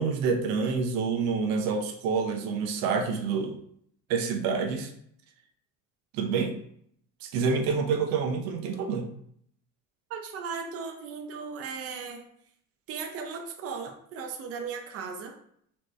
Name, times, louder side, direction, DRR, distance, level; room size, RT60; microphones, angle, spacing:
voice 1, 0.0-3.6 4.1-4.9 6.1-6.6 7.2-9.1, right 5 dB, 75° right, 4 dB, 0.8 m, -27 dB
voice 2, 10.1-12.3 12.9-15.3, right 5 dB, 40° right, 3 dB, 0.6 m, -37 dB
4.3 x 3.2 x 3.2 m, 0.67 s
cardioid pair, 135°, 36 cm